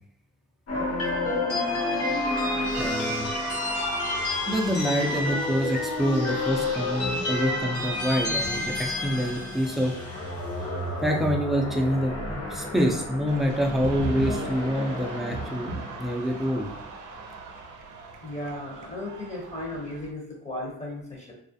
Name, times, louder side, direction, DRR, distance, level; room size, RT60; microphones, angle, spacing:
sound 1, 0.7-16.9, left 2 dB, 50° left, 0.9 m, -30 dB
voice 1, 2.8-3.3 4.5-10.0 11.0-12.1 12.5-16.7, equal, ahead, 0 dB, 0.4 m, -26 dB
sound 2, 13.3-20.1, right 4 dB, 75° right, 0.5 m, -38 dB
voice 2, 18.2-21.3, left 1 dB, 25° left, -3 dB, 0.8 m, -35 dB
2.3 x 2.0 x 2.7 m, 0.74 s
cardioid pair, 90°, 30 cm